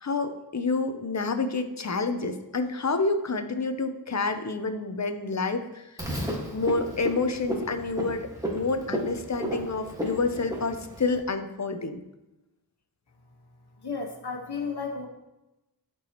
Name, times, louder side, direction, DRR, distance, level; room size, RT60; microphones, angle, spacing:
voice 1, 0.0-5.8 6.5-12.0, left 3 dB, 45° left, 8 dB, 0.8 m, -28 dB
Frog, 6.0-11.2, equal, 10° right, 1.7 m, -33 dB
voice 2, 13.8-15.1, left 4 dB, 75° left, 1 dB, 1.5 m, -33 dB
12.0 x 4.6 x 3.0 m, 0.98 s
wide cardioid pair, 80°, 40 cm